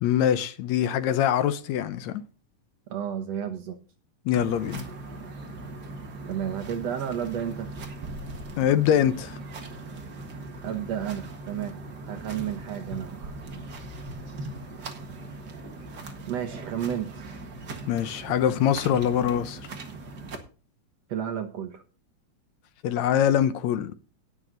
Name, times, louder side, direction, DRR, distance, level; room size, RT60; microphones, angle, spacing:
voice 1, 0.0-2.2 4.3-4.8 8.6-9.4 17.9-19.6 22.8-24.0, left 10 dB, 75° left, 2.0 m, -24 dB
voice 2, 2.9-3.8 6.3-7.7 10.6-11.8 12.1-13.4 16.3-17.3 21.1-21.8, right 9 dB, 65° right, 2.1 m, -32 dB
sound 1, 4.3-20.4, right 2 dB, 40° right, 1.8 m, -39 dB
18.5 x 6.5 x 3.9 m
omnidirectional pair, 3.5 m